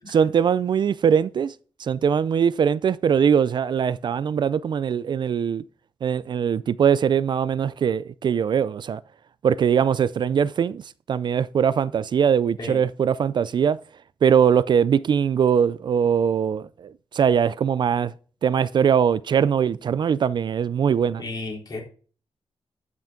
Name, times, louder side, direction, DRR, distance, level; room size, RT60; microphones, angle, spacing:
voice 1, 0.1-1.5 1.8-5.6 6.0-9.0 9.4-10.8 11.1-13.8 14.2-18.1 18.4-21.2, right 7 dB, 50° right, 0.3 m, -21 dB
voice 2, 21.2-21.8, left 2 dB, 40° left, 3.5 m, -32 dB
12.0 x 5.9 x 3.8 m
wide cardioid pair, 150°, 10 cm